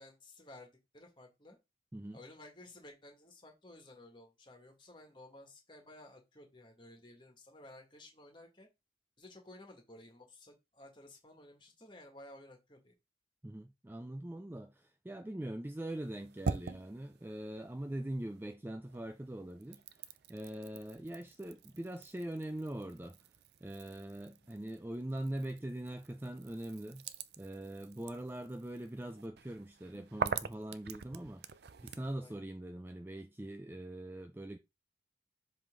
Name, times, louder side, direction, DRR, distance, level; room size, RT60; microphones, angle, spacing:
voice 1, 0.0-1.6 2.1-8.7 9.2-12.9 24.4-24.5 32.2-32.3, left 1 dB, 25° left, 2.0 m, -55 dB
voice 2, 13.4-23.2 23.6-27.1 27.4-34.6, right 1 dB, 10° right, 0.4 m, -42 dB
sound 1, 15.9-18.5 18.9-32.1, right 5 dB, 65° right, 0.5 m, -45 dB
7.5 x 3.8 x 3.8 m
head